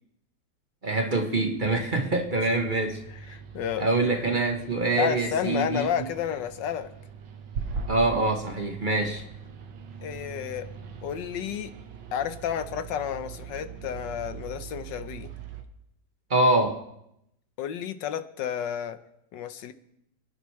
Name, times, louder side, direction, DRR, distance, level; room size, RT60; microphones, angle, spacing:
voice 1, 0.8-3.0 3.3-3.4 3.8-6.1 7.9-9.2 16.3-16.8, right 2 dB, 30° right, 3 dB, 1.2 m, -25 dB
sound 1, 1.6-15.6, right 6 dB, 80° right, 1.8 m, -41 dB
voice 2, 3.3-3.9 5.0-6.9 10.0-10.7 11.0-11.7 12.1-15.3 17.6-19.0 19.3-19.7, left 9 dB, 90° left, 10 dB, 1.5 m, -31 dB
29.5 x 10.5 x 3.2 m, 0.81 s
omnidirectional pair, 1.9 m